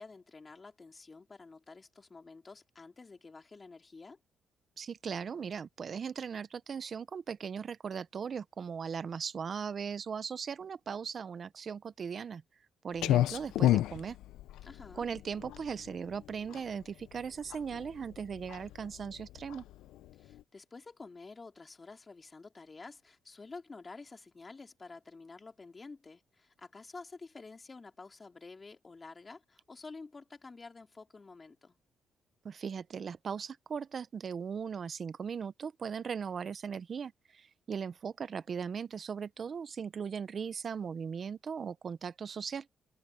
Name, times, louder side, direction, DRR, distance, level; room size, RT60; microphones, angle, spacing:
voice 1, 0.0-4.2 14.6-15.0 20.1-31.8, left 3 dB, 30° left, 3.4 m, -50 dB
voice 2, 4.8-12.4 12.8-14.2 14.9-19.6 32.4-42.7, right 6 dB, 45° right, 0.7 m, -38 dB
Clock, 13.0-20.4, left 14 dB, 90° left, 0.5 m, -32 dB
cardioid pair, 90°, 0 cm